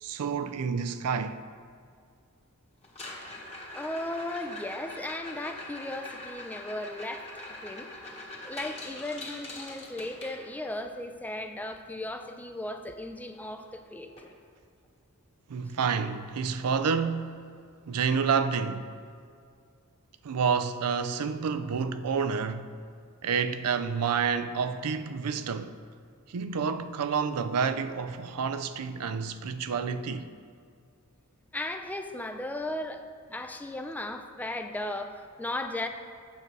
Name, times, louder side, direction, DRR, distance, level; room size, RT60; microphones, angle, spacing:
voice 1, 0.0-1.4 15.5-17.4 17.9-18.9 20.2-22.8 23.2-25.7 26.3-30.3, right 6 dB, 85° right, 0.4 m, -29 dB
sound 1, 2.8-10.8 13.1-13.2 13.4-13.7 14.2-14.3 14.8-14.9 16.8-16.9, left 2 dB, 30° left, 1.4 m, -43 dB
voice 2, 3.7-7.9 8.4-14.3 31.5-35.9, left 1 dB, 5° left, 0.4 m, -36 dB
8.3 x 6.7 x 4.6 m
head